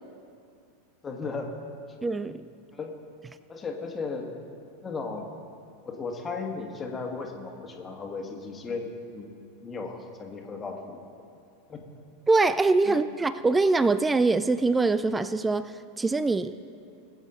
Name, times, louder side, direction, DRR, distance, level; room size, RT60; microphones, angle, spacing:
voice 1, 1.0-1.6 2.7-2.9 3.5-4.3 4.8-5.3 5.8-9.3 9.6-11.0 11.7-11.8 12.9-13.0, left 4 dB, 20° left, 2 dB, 1.7 m, -35 dB
voice 2, 2.0-2.5 12.3-16.6, right 3 dB, 15° right, 14 dB, 0.4 m, -24 dB
20.5 x 8.2 x 4.0 m, 2.6 s
figure-of-eight pair, 85°, 0 cm